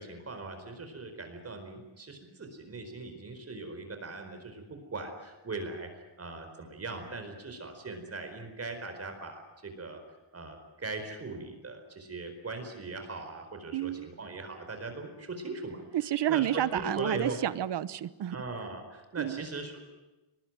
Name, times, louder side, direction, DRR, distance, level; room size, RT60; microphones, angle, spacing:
voice 1, 0.0-10.0 10.3-15.8 16.3-17.4 18.3-19.9, right 3 dB, 30° right, 6 dB, 4.5 m, -39 dB
voice 2, 13.7-14.1 15.9-18.4 19.2-19.4, right 12 dB, 60° right, 16 dB, 1.1 m, -30 dB
23.0 x 20.5 x 9.2 m, 1.1 s
cardioid pair, 125°, 45 cm